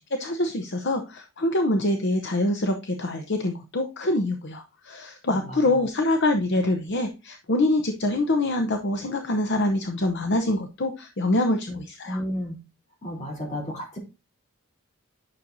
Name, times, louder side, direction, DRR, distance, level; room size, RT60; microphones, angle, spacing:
voice 1, 0.2-12.2, left 1 dB, 55° left, 5 dB, 0.8 m, -25 dB
voice 2, 12.0-12.6 13.0-14.0, equal, 35° left, -1 dB, 3.1 m, -32 dB
9.8 x 6.3 x 2.6 m, 0.27 s
head